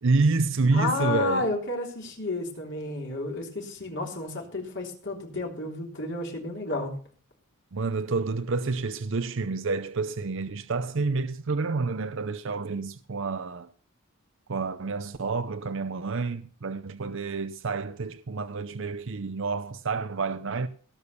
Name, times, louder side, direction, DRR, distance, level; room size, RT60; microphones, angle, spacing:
voice 1, 0.0-1.5 7.7-13.7 14.5-20.7, right 3 dB, 60° right, 0.6 m, -28 dB
voice 2, 0.7-6.9, left 2 dB, 55° left, 3.5 m, -31 dB
17.5 x 6.4 x 7.0 m
head